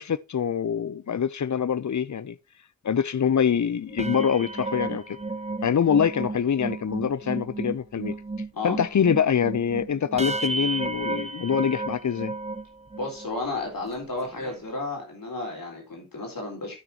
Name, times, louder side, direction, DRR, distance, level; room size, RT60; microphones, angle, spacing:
voice 1, 0.0-2.4 2.8-5.2 5.6-8.1 8.6-12.3, left 7 dB, 60° left, 0.6 m, -25 dB
sound 1, 3.9-13.3 13.8-14.0 14.2-14.6, right 3 dB, 20° right, 0.8 m, -33 dB
voice 2, 13.0-16.8, left 2 dB, 85° left, 4.0 m, -32 dB
12.0 x 6.3 x 2.9 m
wide cardioid pair, 85°, 33 cm